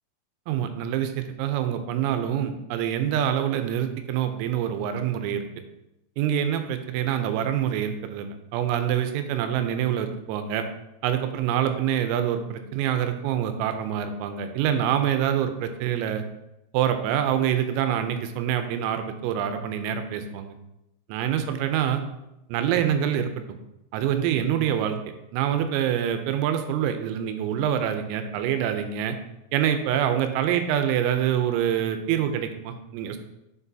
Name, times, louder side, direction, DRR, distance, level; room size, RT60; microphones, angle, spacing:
voice 1, 0.5-5.5 6.2-10.7 11.0-16.2 16.7-20.6 21.1-22.0 22.5-23.3 23.9-25.0 25.3-29.2 29.5-33.2, right 9 dB, 85° right, 8 dB, 3.3 m, -26 dB
7.4 x 6.0 x 2.7 m, 0.88 s
omnidirectional pair, 5.9 m